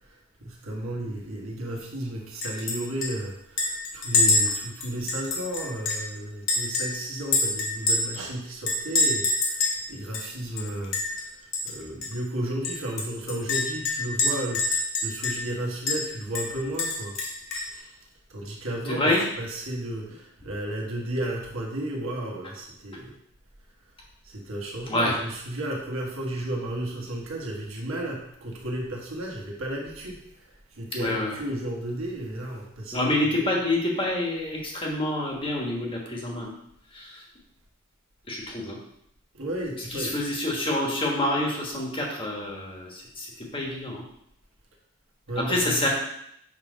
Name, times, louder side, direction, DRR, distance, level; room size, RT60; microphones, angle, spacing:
voice 1, 0.4-11.3 11.6-17.2 17.7-17.9 18.3-23.1 24.2-30.2 30.8-33.6 39.3-40.2 45.3-45.9, right 1 dB, 70° right, -1 dB, 1.4 m, -33 dB
Chink clink, 2.4-2.8 3.0-3.1 3.6-6.1 6.5-8.2 8.7-9.8 10.1-10.2 10.6-11.2 11.5-11.7 12.0-12.1 12.6-15.5 15.9-16.0 16.3-17.7, left 2 dB, 60° left, 1.4 m, -26 dB
voice 2, 18.8-19.2 24.9-25.2 31.0-31.4 32.9-36.5 36.9-37.2 38.3-38.8 39.7-44.0 45.3-45.9, left 1 dB, 25° left, -1 dB, 1.2 m, -27 dB
6.4 x 3.6 x 5.0 m, 0.74 s
head